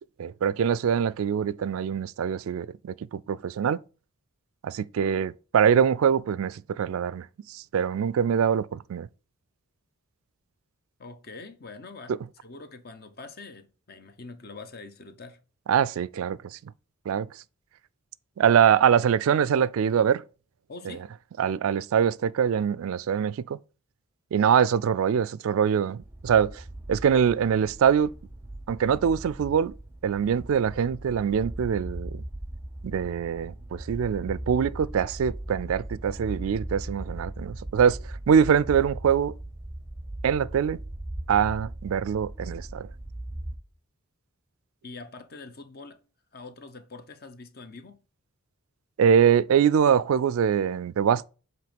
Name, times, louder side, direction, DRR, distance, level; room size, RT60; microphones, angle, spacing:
voice 1, 0.2-3.8 4.6-9.1 15.7-16.6 17.1-17.3 18.4-20.2 20.9-21.0 21.4-23.6 24.3-26.6 26.9-28.1 28.7-29.7 30.0-32.2 32.8-38.0 38.3-39.3 40.2-40.8 41.3-42.9 49.0-51.2, right 7 dB, 70° right, 0.3 m, -23 dB
voice 2, 11.0-12.2 12.4-15.4 20.7-21.1 44.8-46.0 46.3-48.0, left 3 dB, 45° left, 0.8 m, -44 dB
sound 1, 26.0-43.6, right 1 dB, 10° right, 0.6 m, -39 dB
7.7 x 3.1 x 5.1 m
head